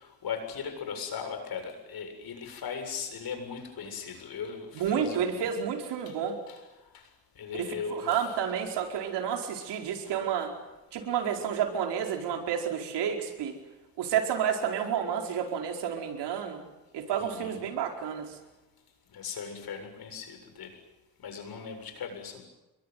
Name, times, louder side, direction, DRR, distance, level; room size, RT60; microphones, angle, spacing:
voice 1, 0.0-5.5 6.1-6.2 6.5-6.6 6.9-7.0 7.4-8.2 10.1-10.2 17.2-17.7 19.1-20.7 21.2-22.4, left 6 dB, 65° left, 7 dB, 7.5 m, -38 dB
voice 2, 4.7-6.4 7.6-10.5 10.9-13.5 14.0-16.6 16.9-18.3, right 8 dB, 90° right, 3 dB, 4.9 m, -30 dB
28.0 x 22.5 x 9.5 m, 1.0 s
cardioid pair, 95°, 40 cm